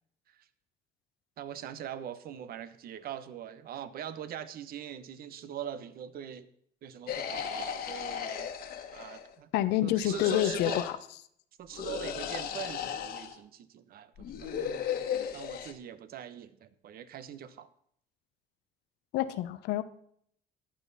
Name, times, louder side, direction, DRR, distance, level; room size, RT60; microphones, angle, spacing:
voice 1, 1.4-6.5 6.8-8.5 8.9-9.5 9.8-10.8 11.6-14.5 15.3-17.7, right 9 dB, 60° right, 14 dB, 1.0 m, -42 dB
sound 1, 7.1-9.3 10.0-10.9 11.7-13.4 14.2-15.7, left 8 dB, 65° left, 1.5 m, -35 dB
voice 2, 9.5-10.9 19.1-19.8, left 13 dB, 85° left, 12 dB, 0.9 m, -28 dB
14.0 x 11.0 x 4.1 m, 0.67 s
cardioid pair, 110°, 17 cm